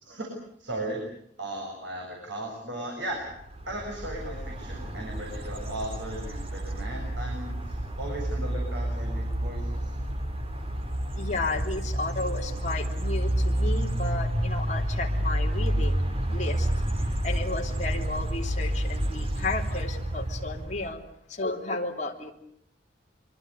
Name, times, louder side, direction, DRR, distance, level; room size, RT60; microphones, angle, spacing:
voice 1, 0.6-1.0 1.4-3.2 3.5-10.0, right 1 dB, 70° right, 0 dB, 7.6 m, -37 dB
sound 1, 3.3-20.9, right 1 dB, 30° right, 2.6 m, -29 dB
voice 2, 11.2-16.7 17.0-21.0 21.3-22.3, left 3 dB, 40° left, 1 dB, 3.5 m, -33 dB
25.5 x 24.5 x 8.1 m, 0.67 s
head